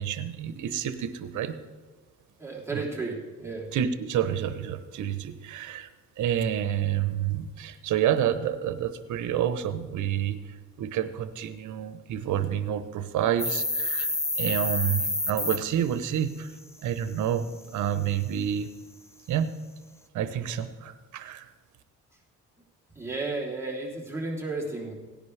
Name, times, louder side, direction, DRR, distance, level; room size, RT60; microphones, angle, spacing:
voice 1, 0.0-1.6 2.7-2.8 3.7-5.9 6.2-16.5 16.8-17.5 17.7-18.7 19.3-19.6 20.1-21.5, right 10 dB, 75° right, 11 dB, 0.9 m, -29 dB
voice 2, 2.4-3.7 22.9-24.9, right 3 dB, 10° right, -4 dB, 3.2 m, -33 dB
sound 1, 13.4-15.6, left 2 dB, 10° left, 0.5 m, -28 dB
17.5 x 10.5 x 3.3 m, 1.4 s
cardioid pair, 90°, 30 cm